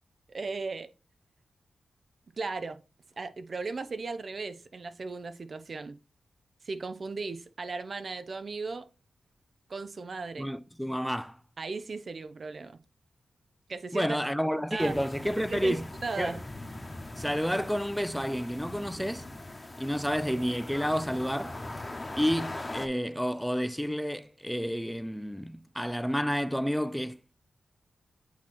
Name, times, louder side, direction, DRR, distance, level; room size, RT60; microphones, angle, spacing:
voice 1, 0.3-0.9 2.4-2.8 3.2-6.0 6.6-8.9 9.7-10.5 11.6-12.8 13.7-14.2 14.7-15.1 15.4-16.4, right 4 dB, 55° right, 0.6 m, -36 dB
voice 2, 10.4-11.4 13.9-15.9 16.2-16.4 17.1-19.3 19.8-21.6 22.2-27.3, equal, ahead, 0.4 m, -30 dB
sound 1, 14.8-22.9, left 2 dB, 25° left, 1.0 m, -41 dB
8.2 x 3.0 x 4.2 m
cardioid pair, 50°, 0 cm